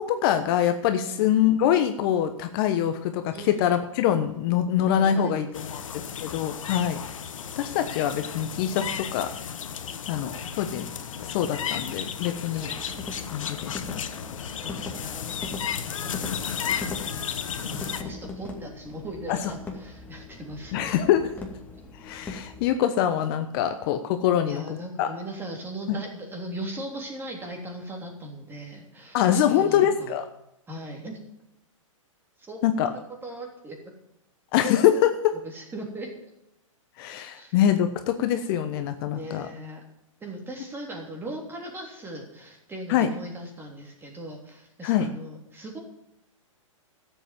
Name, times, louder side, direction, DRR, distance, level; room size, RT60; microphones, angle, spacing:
voice 1, 0.0-7.0 7.6-9.3 10.1-10.9 11.2-12.7 13.3-14.0 19.3-19.4 20.7-21.3 22.0-24.6 25.0-25.1 25.9-26.0 29.1-30.2 32.6-32.9 34.5-35.3 37.0-39.5 42.9-43.1 44.8-45.1, left 10 dB, 45° left, 8 dB, 1.1 m, -24 dB
voice 2, 5.0-6.1 7.4-7.5 9.8-10.0 12.5-12.8 14.6-20.9 23.6-23.7 24.5-30.1 30.7-31.2 32.4-32.6 32.9-33.8 35.3-36.3 37.3-37.6 39.0-39.8 40.2-45.8, right 1 dB, 15° right, 1 dB, 3.2 m, -39 dB
sound 1, 5.5-18.0, left 8 dB, 70° left, 1.3 m, -34 dB
sound 2, 12.6-22.7, left 3 dB, 10° left, 2.2 m, -40 dB
13.0 x 8.0 x 7.6 m, 0.84 s
hypercardioid pair, 125°, 17 cm